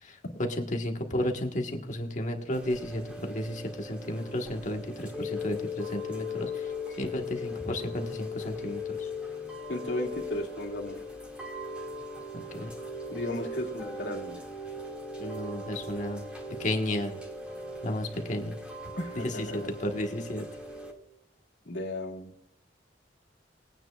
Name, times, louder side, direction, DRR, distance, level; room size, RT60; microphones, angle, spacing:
voice 1, 0.0-6.7 7.0-9.1 12.3-12.7 15.2-16.2 16.6-17.2 17.8-18.5 19.1-20.4, left 1 dB, 45° left, 3 dB, 1.4 m, -33 dB
Chime / Rain, 2.5-20.9, left 2 dB, 5° right, 2.1 m, -39 dB
voice 2, 9.7-11.0 13.1-14.4 19.0-19.7 21.7-22.3, left 1 dB, 85° left, 0 dB, 2.2 m, -35 dB
22.0 x 9.1 x 2.4 m, 0.78 s
head